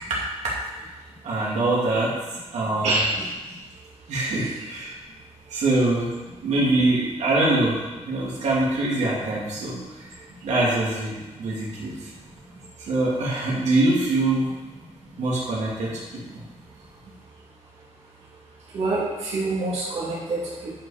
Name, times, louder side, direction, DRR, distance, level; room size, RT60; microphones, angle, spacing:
voice 1, 0.4-0.8 1.2-2.1 2.5-2.9 4.1-5.0 5.5-6.1 6.4-7.8 8.1-9.8 10.4-11.1 11.4-12.1 12.8-14.5 15.2-15.9 16.3-16.4, right 2 dB, 90° right, -6 dB, 2.7 m, -23 dB
voice 2, 2.8-3.3 4.3-4.5 18.7-20.7, right 2 dB, 70° right, -7 dB, 2.5 m, -26 dB
10.0 x 5.7 x 5.0 m, 1.2 s
wide cardioid pair, 175°, 12 cm